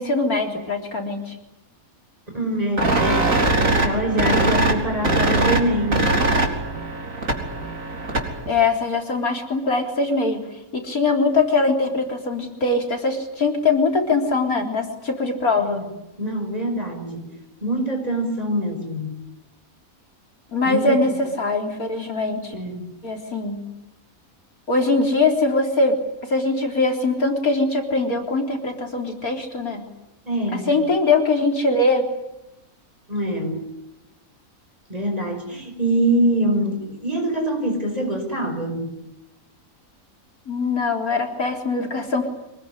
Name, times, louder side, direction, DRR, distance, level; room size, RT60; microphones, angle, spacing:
voice 1, 0.0-1.4 8.5-10.4 10.7-15.8 20.5-22.6 23.0-23.7 24.7-29.8 30.5-32.0 40.5-42.3, left 3 dB, 75° left, 4 dB, 4.2 m, -22 dB
voice 2, 2.3-6.1 15.6-15.8 16.2-17.3 17.6-19.1 20.6-21.1 22.5-22.9 30.3-30.7 33.1-33.7 34.9-39.0, right 1 dB, 25° right, 4 dB, 6.0 m, -24 dB
sound 1, 2.8-8.5, right 2 dB, 65° right, 4.1 m, -21 dB
25.5 x 20.5 x 10.0 m, 0.91 s
omnidirectional pair, 1.5 m